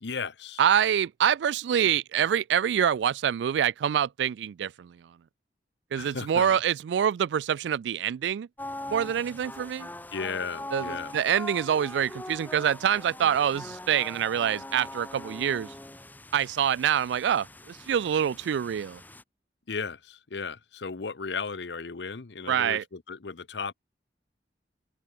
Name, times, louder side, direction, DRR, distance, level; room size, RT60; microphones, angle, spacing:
voice 1, 0.0-0.6 6.0-6.6 10.1-11.2 19.7-23.7, left 5 dB, 80° left, 0.8 m, -35 dB
voice 2, 0.6-5.0 5.9-8.5 8.9-9.9 10.7-15.7 16.3-19.0 22.5-22.8, right 9 dB, 85° right, 0.3 m, -26 dB
sound 1, 8.6-19.2, left 1 dB, 10° left, 1.6 m, -42 dB
open air
head